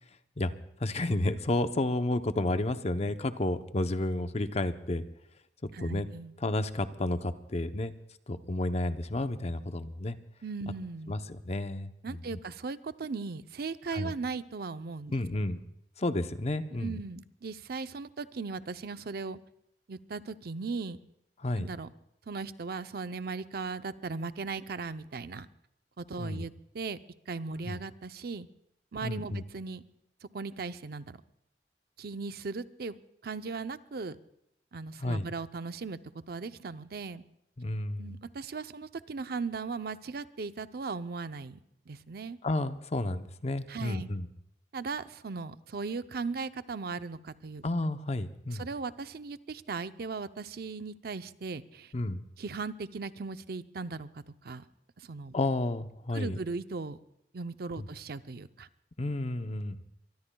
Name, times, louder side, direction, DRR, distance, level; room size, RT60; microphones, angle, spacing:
voice 1, 0.8-5.0 5.8-6.1 6.4-7.9 8.3-10.2 11.1-11.9 13.9-14.1 15.1-15.6 16.0-17.0 21.4-21.7 26.2-26.5 27.7-27.8 29.0-29.4 35.0-35.3 37.6-38.2 42.4-44.3 47.6-48.6 51.9-52.2 55.3-56.4 57.8-57.9 59.0-59.8, left 2 dB, 40° left, 10 dB, 0.7 m, -31 dB
voice 2, 5.7-6.3 10.4-11.1 12.0-15.2 16.8-19.4 19.9-21.0 21.6-21.9 22.3-25.5 26.0-27.0 27.3-28.5 28.9-29.8 30.3-31.2 32.0-32.9 33.2-34.2 34.7-36.0 36.3-37.2 38.0-41.6 41.9-42.4 43.7-44.1 44.7-47.6 48.6-51.9 52.4-54.6 55.0-55.3 56.1-57.0 57.3-58.7, right 4 dB, 60° right, 12 dB, 0.6 m, -38 dB
23.5 x 23.0 x 2.3 m, 0.77 s
head